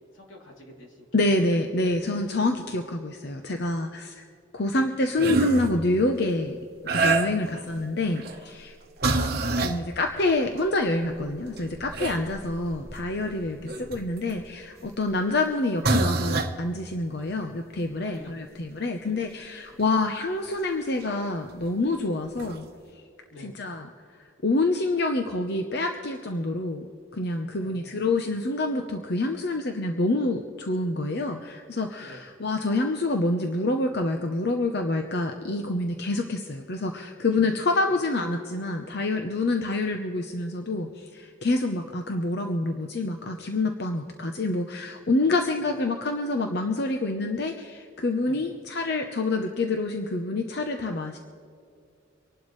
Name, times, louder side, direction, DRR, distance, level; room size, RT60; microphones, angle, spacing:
voice 1, 0.0-1.1 4.7-4.9 7.5-7.6 9.0-9.8 13.6-13.7 18.1-18.4 19.0-19.2 19.7-19.8 23.3-23.5 27.6-28.1 32.1-32.2 37.3-37.4 39.6-39.7 45.2-45.3 48.3-48.6, left 1 dB, 85° left, -1 dB, 3.1 m, -47 dB
voice 2, 1.1-4.2 4.5-6.6 6.9-8.8 9.6-22.7 23.4-23.9 24.2-26.9 27.1-51.2, left 2 dB, 55° left, 4 dB, 0.8 m, -27 dB
sound 1, 5.2-5.7 6.9-7.6 8.1-8.4 9.0-9.8 10.7-10.8 11.2-14.3 15.3-15.5 15.8-16.6 19.8-19.9 21.6-21.7 22.4-22.5, right 3 dB, 50° right, 1.1 m, -26 dB
25.0 x 11.5 x 3.2 m, 2.4 s
head